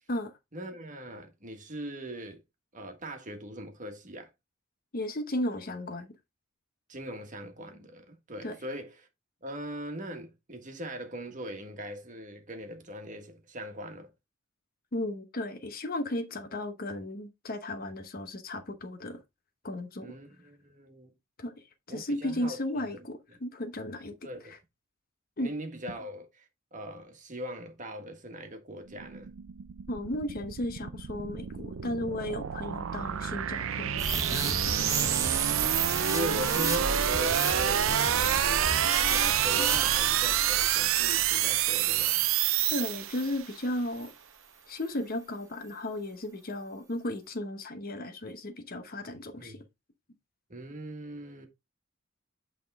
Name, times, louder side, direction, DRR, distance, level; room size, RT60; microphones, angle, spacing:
voice 1, 0.5-2.4 2.7-4.3 6.9-9.1 9.4-14.1 20.0-21.1 21.9-22.6 22.9-23.0 24.2-24.5 25.4-26.3 26.7-29.3 34.9-35.4 35.9-42.3 49.4-49.6 50.5-51.5, equal, 40° right, 1.6 m, -40 dB
voice 2, 4.9-6.1 8.4-8.6 14.9-19.2 19.6-20.1 21.4-21.5 21.9-24.2 24.5-24.6 25.4-25.5 29.9-34.9 42.7-44.1 44.7-49.6, left 1 dB, 45° left, 0.9 m, -35 dB
sound 1, 28.9-43.5, right 11 dB, 75° right, 0.5 m, -28 dB
sound 2, 34.0-42.6 43.1-43.3, right 3 dB, 15° right, 0.9 m, -34 dB
8.4 x 3.7 x 3.5 m
head